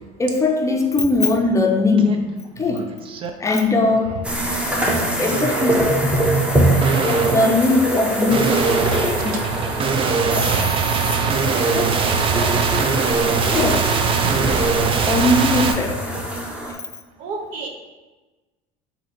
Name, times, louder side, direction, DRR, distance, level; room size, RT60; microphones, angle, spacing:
voice 1, 0.2-2.2 2.6-2.9 3.4-4.2 5.2-5.8 7.0-8.5 10.3-10.5 11.7-11.8 12.4-12.5 13.5-13.8 15.1-16.0 16.6-16.8, left 2 dB, 20° left, 3 dB, 0.6 m, -19 dB
sound 1, 2.0-2.2 2.6-3.3 3.8-4.2 5.3-5.9 6.8-15.7, right 5 dB, 35° right, 0.5 m, -22 dB
sound 2, 4.2-16.7, right 1 dB, 10° right, 0.8 m, -23 dB
voice 2, 10.5-10.8 12.5-12.6 14.2-14.3 17.2-17.7, right 3 dB, 65° right, 2 dB, 0.8 m, -30 dB
4.1 x 2.8 x 4.1 m, 1.2 s
supercardioid pair, 90°, 15 cm